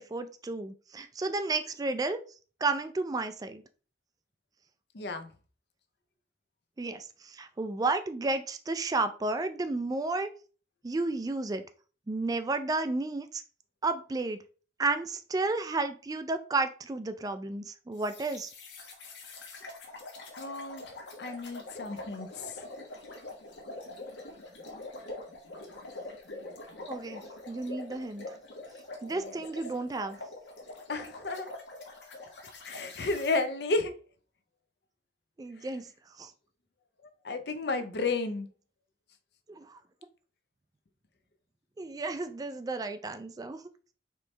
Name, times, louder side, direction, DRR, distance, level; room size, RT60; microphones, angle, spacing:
voice 1, 0.0-2.2 2.6-3.6 6.8-10.3 10.8-11.6 12.1-13.4 13.8-14.4 14.8-18.5 26.9-28.3 29.0-30.2 35.4-35.9 36.2-36.3 39.5-39.8 41.8-43.6, right 3 dB, 20° right, 0.3 m, -32 dB
voice 2, 4.9-5.3 20.4-20.9 21.2-22.6 29.2-29.3 30.9-31.5 32.6-34.0 37.2-38.5, left 3 dB, 65° left, 0.6 m, -32 dB
sound 1, 18.0-33.4, left 2 dB, 85° left, 1.1 m, -44 dB
4.4 x 3.1 x 3.2 m
head